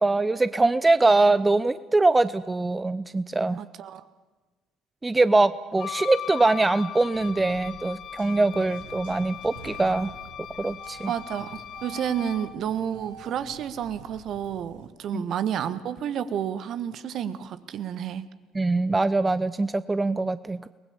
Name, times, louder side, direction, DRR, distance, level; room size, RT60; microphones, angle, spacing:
voice 1, 0.0-3.6 5.0-10.1 10.6-11.1 15.1-15.2 18.5-20.7, right 2 dB, 15° right, 15 dB, 0.7 m, -23 dB
voice 2, 3.5-4.0 11.0-18.2, right 9 dB, 50° right, 13 dB, 1.4 m, -30 dB
Wind instrument woodwind instrument, 5.8-12.6, left 10 dB, 50° left, 0.7 m, -39 dB
sound 1, 7.1-14.9, right 4 dB, 75° right, 2.9 m, -47 dB
30.0 x 20.0 x 7.3 m, 1.3 s
figure-of-eight pair, 55°, 0 cm